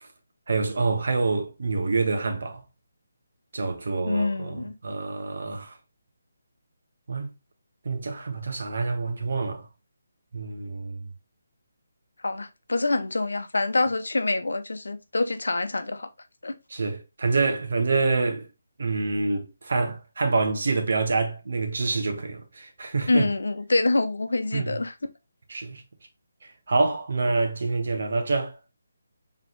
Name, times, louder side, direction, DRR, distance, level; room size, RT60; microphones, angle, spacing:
voice 1, 0.5-2.6 3.5-5.8 7.1-7.3 7.8-9.7 10.3-11.1 16.7-18.5 18.8-23.3 24.5-24.8 25.5-25.8 26.7-28.6, right 3 dB, 65° right, 1.2 m, -26 dB
voice 2, 4.0-4.7 12.2-16.1 16.4-16.6 23.1-24.9, left 2 dB, 85° left, 0.7 m, -26 dB
4.2 x 3.6 x 3.0 m
figure-of-eight pair, 160°, 0 cm